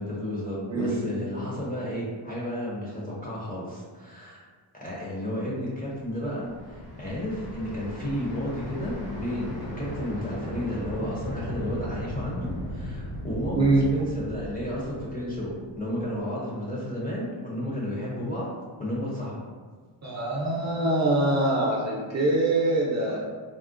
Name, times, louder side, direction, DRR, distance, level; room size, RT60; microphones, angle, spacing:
voice 1, 0.0-4.4 4.7-18.5 18.8-19.5, equal, 20° left, -7 dB, 0.5 m, -32 dB
sound 1, 5.9-15.9, equal, 50° left, 0.8 m, -37 dB
voice 2, 13.5-13.9 20.0-23.2, right 2 dB, 35° right, -5 dB, 0.6 m, -24 dB
3.6 x 2.0 x 2.4 m, 1.5 s
wide cardioid pair, 150°, 48 cm